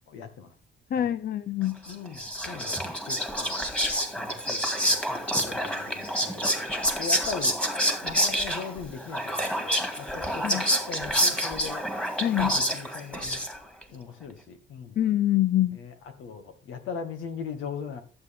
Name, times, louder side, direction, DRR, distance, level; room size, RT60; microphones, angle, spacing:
voice 1, 0.1-0.5 1.0-1.1 1.9-3.7 4.2-7.6 8.0-11.8 12.3-13.4 13.9-15.0 15.8-18.0, left 6 dB, 90° left, 2.1 m, -39 dB
voice 2, 0.9-1.8 10.4-10.7 12.2-12.5 15.0-15.8, left 12 dB, 50° left, 0.6 m, -25 dB
Whispering, 1.9-13.8, equal, 5° left, 2.3 m, -28 dB
13.0 x 7.7 x 3.7 m
cardioid pair, 90°, 20 cm